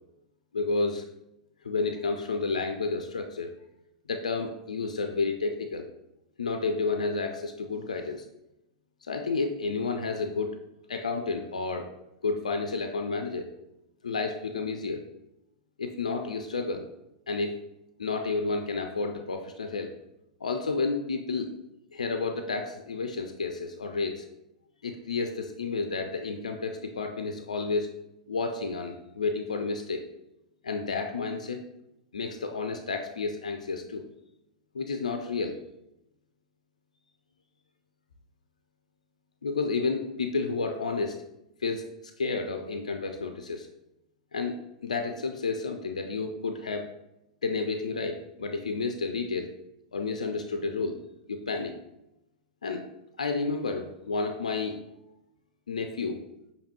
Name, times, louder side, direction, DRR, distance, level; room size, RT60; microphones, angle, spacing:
voice 1, 0.5-1.0 1.6-3.5 4.1-5.9 6.4-8.2 9.0-10.6 10.9-11.9 12.2-13.5 14.0-15.0 15.8-16.8 17.3-17.5 18.0-19.9 20.4-21.5 21.9-24.3 24.8-27.9 28.3-30.0 30.6-31.6 32.1-34.0 34.7-35.6 39.4-41.2 41.6-41.8 42.2-43.7 44.3-46.9 47.4-49.5 49.9-51.0 51.3-51.7 52.6-52.8 53.2-54.8 55.7-56.2, left 4 dB, 80° left, 5 dB, 0.4 m, -31 dB
6.4 x 2.7 x 2.9 m, 0.87 s
hypercardioid pair, 100°, 4 cm